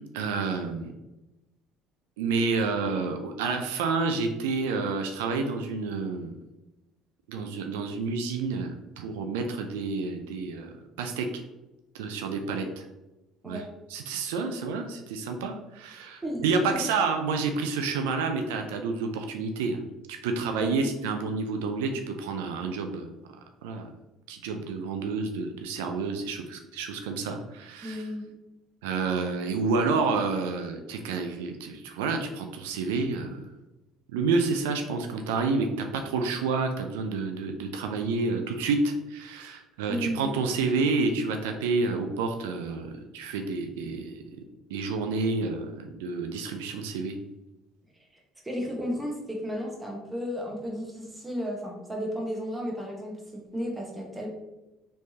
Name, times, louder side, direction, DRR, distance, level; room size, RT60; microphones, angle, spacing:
voice 1, 0.1-0.9 2.2-6.3 7.3-11.4 11.9-12.8 13.4-13.6 13.9-19.8 20.2-23.1 23.6-23.9 24.3-28.0 28.8-33.4 34.1-44.2 44.7-47.1, right 4 dB, 90° right, 5 dB, 0.3 m, -29 dB
voice 2, 16.2-16.8 20.6-20.7 27.8-28.3 39.9-40.4 48.4-54.3, equal, 15° right, -1 dB, 1.2 m, -33 dB
3.2 x 3.2 x 2.8 m, 0.98 s
supercardioid pair, 75°, 0 cm